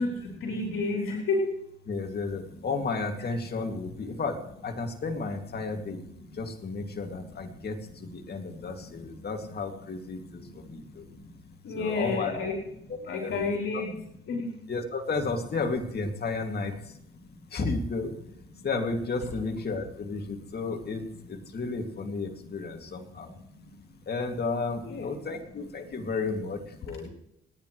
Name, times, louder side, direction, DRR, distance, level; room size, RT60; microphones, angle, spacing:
voice 1, 0.0-1.5 8.2-8.6 10.4-10.7 11.1-11.3 11.6-12.5 12.8-13.9 14.3-14.5 23.6-23.7 24.9-25.1, left 3 dB, 80° left, -1 dB, 4.0 m, -31 dB
voice 2, 1.9-6.0 6.3-11.1 11.7-12.3 12.9-13.5 13.7-13.8 14.7-17.0 17.5-18.2 18.6-23.3 24.1-27.1, left 3 dB, 50° left, 3 dB, 2.6 m, -33 dB
30.0 x 10.0 x 3.3 m, 0.78 s
cardioid pair, 80°, 21 cm